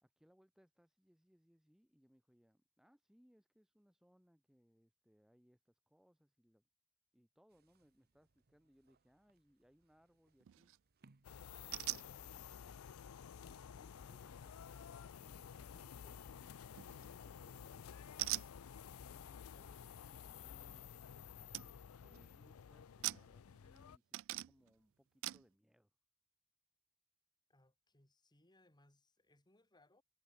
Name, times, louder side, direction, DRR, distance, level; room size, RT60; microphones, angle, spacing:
voice 1, 0.0-6.6 7.1-10.8 11.6-18.3 19.1-21.0 22.0-25.9, equal, ahead, 1.1 m, -72 dB
sound 1, 7.5-12.3, right 3 dB, 45° right, 0.9 m, -74 dB
sound 2, 10.4-10.8 11.7-12.1 16.8-17.2 18.2-18.5 21.0-21.1 21.5-21.7 22.0-22.4 23.0-23.8 24.1-24.7 25.2-25.5, right 19 dB, 65° right, 0.3 m, -42 dB
sound 3, 11.2-24.0, left 7 dB, 75° left, 0.5 m, -53 dB
voice 2, 27.5-30.0, left 1 dB, 20° left, 3.8 m, -71 dB
head